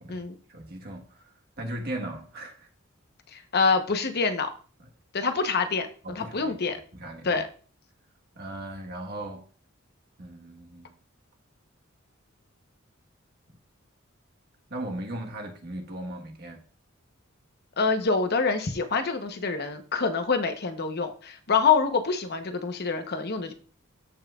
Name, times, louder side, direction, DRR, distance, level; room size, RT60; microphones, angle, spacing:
voice 1, 0.0-2.7 6.0-6.5 6.9-7.4 8.3-9.4 10.2-10.9 14.7-16.6, right 1 dB, 50° right, 1.4 m, -38 dB
voice 2, 3.3-4.5 5.1-6.8 7.2-7.5 17.8-23.5, left 5 dB, 55° left, 0.9 m, -26 dB
13.5 x 5.6 x 2.4 m
head